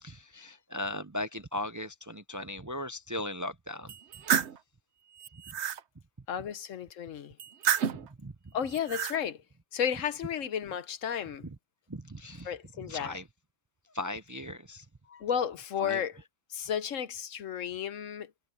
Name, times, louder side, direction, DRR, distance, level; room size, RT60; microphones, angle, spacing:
voice 1, 0.0-3.9 8.2-8.3 11.4-11.5 11.9-12.5 12.8-13.2 13.9-14.8 15.8-16.0, left 1 dB, 20° right, 0.5 m, -38 dB
sound 1, 3.9-4.6 5.2-5.8 7.4-8.1 8.7-9.2, right 8 dB, 65° right, 1.1 m, -30 dB
voice 2, 6.3-7.3 8.5-9.4 9.7-11.5 12.4-13.2 15.1-16.2 16.5-18.3, left 8 dB, 80° left, 1.3 m, -33 dB
omnidirectional pair, 1.3 m